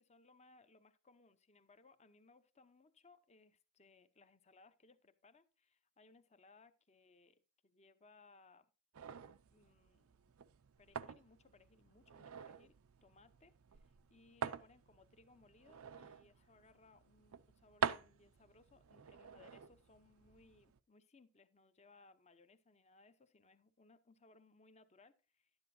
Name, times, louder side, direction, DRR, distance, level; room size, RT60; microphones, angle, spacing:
voice 1, 0.0-8.7 9.5-10.3 10.8-25.5, left 3 dB, 30° left, 0.7 m, -66 dB
sound 1, 8.9-20.8, right 7 dB, 70° right, 0.5 m, -47 dB
11.5 x 9.7 x 2.7 m
head